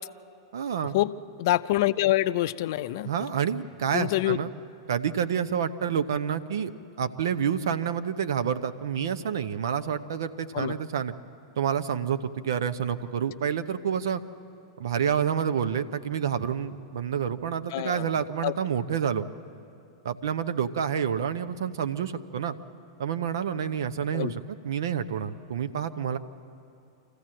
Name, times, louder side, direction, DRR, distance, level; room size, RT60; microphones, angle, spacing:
voice 1, 0.5-1.0 3.0-4.5 4.9-6.7 7.0-11.1 11.6-14.2 14.8-19.3 20.0-22.6 23.0-26.2, right 8 dB, 65° right, 11 dB, 0.8 m, -28 dB
voice 2, 1.4-3.1 3.9-4.4 10.5-10.7 17.7-18.1 18.4-18.5 24.1-24.3, left 15 dB, 55° left, 13 dB, 0.5 m, -25 dB
25.5 x 14.5 x 7.6 m, 2.6 s
figure-of-eight pair, 100°, 2 cm